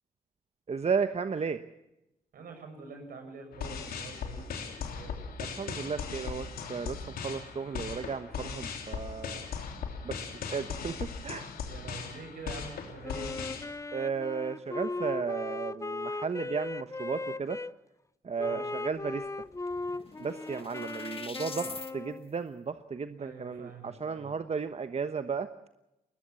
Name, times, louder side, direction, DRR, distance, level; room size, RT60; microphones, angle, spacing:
voice 1, 0.7-1.6 5.4-9.5 10.0-11.5 13.9-17.6 18.2-19.3 20.2-25.5, right 5 dB, 45° right, 10 dB, 1.2 m, -34 dB
voice 2, 2.3-5.2 11.6-13.4 18.4-18.7 23.2-24.6, right 4 dB, 75° right, 5 dB, 7.0 m, -46 dB
sound 1, 3.5-13.6, left 6 dB, 80° left, 3.3 m, -38 dB
Wind instrument woodwind instrument, 13.0-17.7 18.4-22.3, left 3 dB, 20° left, 0.9 m, -38 dB
sound 2, 19.4-21.9, left 4 dB, 40° left, 1.8 m, -44 dB
21.5 x 20.0 x 7.2 m, 0.90 s
supercardioid pair, 55°, 15 cm